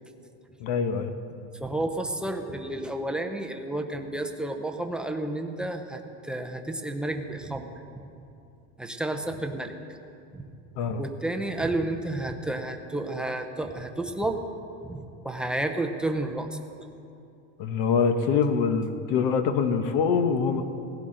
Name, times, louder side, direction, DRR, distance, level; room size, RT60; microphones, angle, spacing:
voice 1, 0.6-1.1 10.8-11.0 17.6-20.6, left 6 dB, 60° left, 8 dB, 1.0 m, -24 dB
voice 2, 1.6-7.7 8.8-9.7 10.3-10.4 11.0-14.4 14.8-16.5, right 2 dB, ahead, 4 dB, 0.6 m, -31 dB
18.5 x 16.0 x 3.8 m, 2.7 s
cardioid pair, 160°, 38 cm